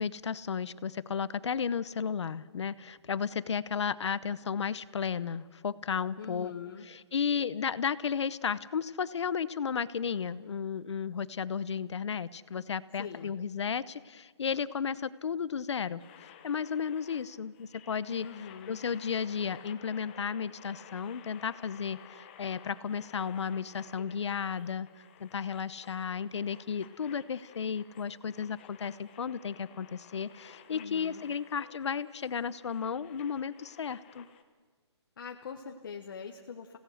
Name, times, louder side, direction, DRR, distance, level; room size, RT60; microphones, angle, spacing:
voice 1, 0.0-6.5 6.8-18.3 18.7-24.9 25.2-34.3, left 6 dB, 75° left, 17 dB, 0.9 m, -34 dB
voice 2, 6.2-6.9 13.0-13.3 18.2-18.8 30.7-31.2 35.2-36.8, left 7 dB, 45° left, 3 dB, 1.1 m, -43 dB
sound 1, 16.0-34.4, left 9 dB, 20° left, 0.9 m, -54 dB
29.0 x 17.0 x 6.5 m, 1.5 s
hypercardioid pair, 175°, 15 cm